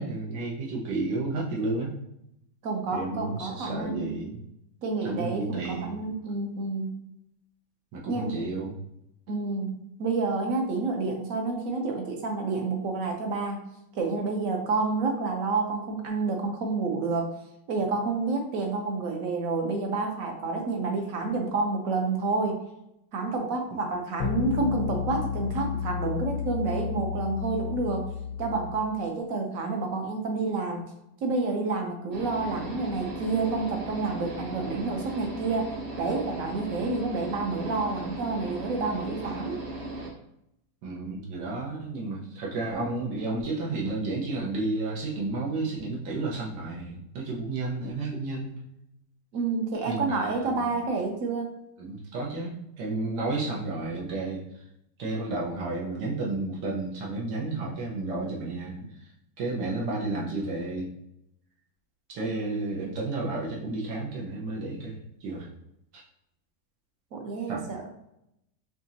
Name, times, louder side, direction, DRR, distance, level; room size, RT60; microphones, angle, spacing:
voice 1, 0.0-1.9 2.9-4.4 5.0-6.1 7.9-8.7 40.8-48.6 49.9-50.7 51.8-54.4 55.0-58.7 59.0-59.1 59.4-60.9 62.1-65.5 67.5-67.6, right 2 dB, 85° right, -4 dB, 1.6 m, -32 dB
voice 2, 2.6-4.2 4.8-7.0 8.1-8.3 9.3-13.6 13.9-17.3 17.7-22.6 23.1-28.1 28.4-30.8 31.2-39.6 49.3-51.5 62.3-62.7 67.1-67.8, right 3 dB, 60° right, 2 dB, 1.0 m, -29 dB
sound 1, 24.2-29.0, left 7 dB, 80° left, 1.3 m, -32 dB
sound 2, 32.1-40.1, right 1 dB, 40° right, 0.7 m, -37 dB
5.2 x 2.8 x 2.7 m, 0.81 s
omnidirectional pair, 1.9 m